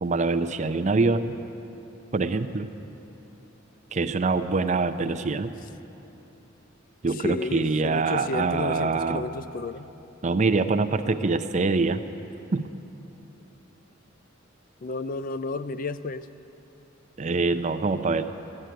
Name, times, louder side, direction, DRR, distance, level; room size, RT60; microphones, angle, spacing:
voice 1, 0.0-1.4 2.1-2.7 3.9-5.5 7.0-9.3 10.2-12.0 12.5-12.7 17.2-18.2, right 3 dB, 35° right, 9 dB, 0.5 m, -24 dB
voice 2, 7.2-9.9 14.8-16.3, left 3 dB, 40° left, 14 dB, 0.4 m, -32 dB
14.5 x 9.8 x 9.1 m, 3.0 s
head